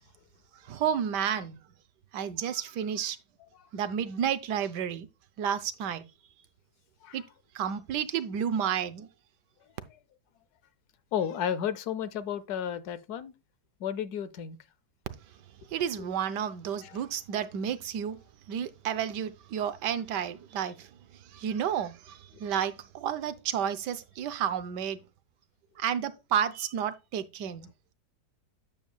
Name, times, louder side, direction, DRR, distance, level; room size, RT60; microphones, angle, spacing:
voice 1, 0.7-1.6 2.1-3.2 3.7-5.1 5.4-6.0 7.1-7.2 7.5-9.1 15.7-18.2 18.5-20.9 21.3-25.0 25.8-27.7, right 8 dB, 85° right, 1.4 m, -31 dB
voice 2, 11.1-13.3 13.8-14.6 16.8-17.0, left 9 dB, 70° left, 1.1 m, -33 dB
9.2 x 7.1 x 2.2 m
omnidirectional pair, 1.8 m